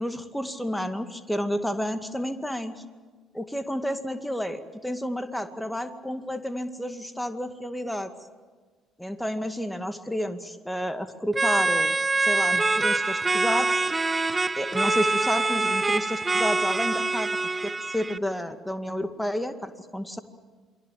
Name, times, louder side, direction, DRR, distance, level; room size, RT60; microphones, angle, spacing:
voice 1, 0.0-2.8 3.3-8.1 9.0-11.9 12.2-13.9 14.6-17.3 17.6-20.2, equal, 5° left, 9 dB, 2.1 m, -30 dB
sound 1, 11.3-18.2, right 3 dB, 20° right, 0.7 m, -25 dB
28.0 x 22.5 x 7.4 m, 1.4 s
figure-of-eight pair, 50°, 0 cm